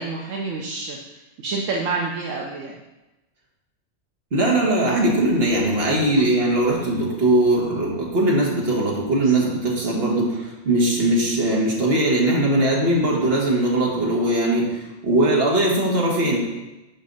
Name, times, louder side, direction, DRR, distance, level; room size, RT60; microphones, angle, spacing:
voice 1, 0.0-2.8 6.2-6.4 9.2-9.3 9.8-9.9, right 3 dB, 75° right, -1 dB, 1.2 m, -29 dB
voice 2, 4.3-16.4, right 1 dB, 50° right, -3 dB, 1.8 m, -20 dB
6.3 x 5.4 x 5.3 m, 1.0 s
omnidirectional pair, 1.3 m